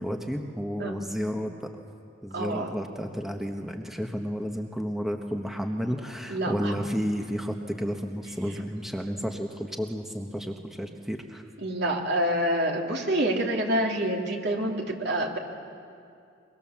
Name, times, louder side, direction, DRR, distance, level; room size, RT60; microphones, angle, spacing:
voice 1, 0.0-1.7 2.2-11.4, equal, ahead, 3 dB, 1.2 m, -32 dB
voice 2, 2.3-2.7 6.3-6.7 11.6-15.4, right 1 dB, 60° right, 1 dB, 2.9 m, -27 dB
25.0 x 23.5 x 7.3 m, 2.4 s
head